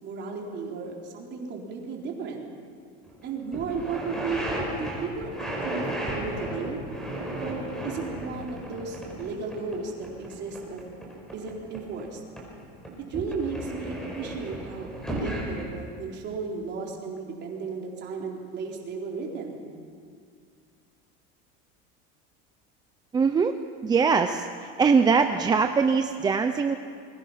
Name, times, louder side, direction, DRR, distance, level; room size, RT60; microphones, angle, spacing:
voice 1, 0.0-2.4 3.2-4.4 4.7-6.8 7.3-10.8 11.3-12.2 13.1-19.6, right 4 dB, 35° right, -1 dB, 4.1 m, -34 dB
sound 1, 3.1-3.2 3.5-12.1 12.4-15.6, right 1 dB, ahead, 4.9 m, -34 dB
voice 2, 23.1-23.6 23.8-26.8, right 5 dB, 15° right, 7 dB, 0.5 m, -22 dB
28.5 x 22.5 x 5.8 m, 2.2 s
cardioid pair, 165°, 31 cm